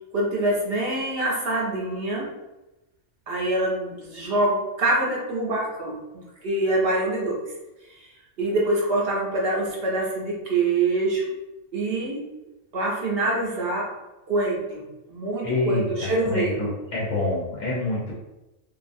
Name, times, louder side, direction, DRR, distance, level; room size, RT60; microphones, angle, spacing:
voice 1, 0.1-2.3 3.3-6.0 6.4-7.4 7.9-8.1 8.4-11.3 11.7-12.3 12.7-13.9 14.3-14.8 15.1-16.7, right 2 dB, 60° right, -3 dB, 0.7 m, -25 dB
voice 2, 15.4-18.1, left 2 dB, 80° left, -5 dB, 1.1 m, -27 dB
2.6 x 2.3 x 2.5 m, 1.0 s
omnidirectional pair, 1.3 m